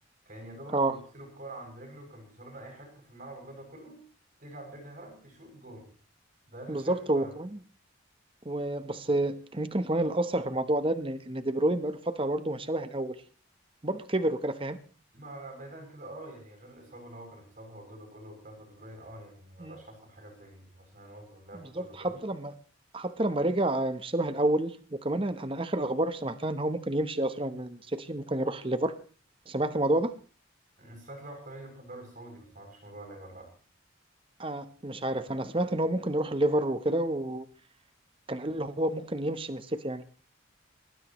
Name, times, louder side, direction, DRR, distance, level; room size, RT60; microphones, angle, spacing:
voice 1, 0.3-4.0 4.4-5.9 6.5-7.3 15.1-22.2 30.8-33.5, right 1 dB, 40° right, 3 dB, 7.2 m, -46 dB
voice 2, 6.7-7.5 8.4-13.1 13.8-14.8 19.6-19.8 21.8-22.5 22.9-28.9 29.5-30.1 34.4-37.5 38.3-40.0, right 1 dB, 25° right, 11 dB, 0.9 m, -29 dB
23.0 x 19.5 x 3.1 m, 0.38 s
head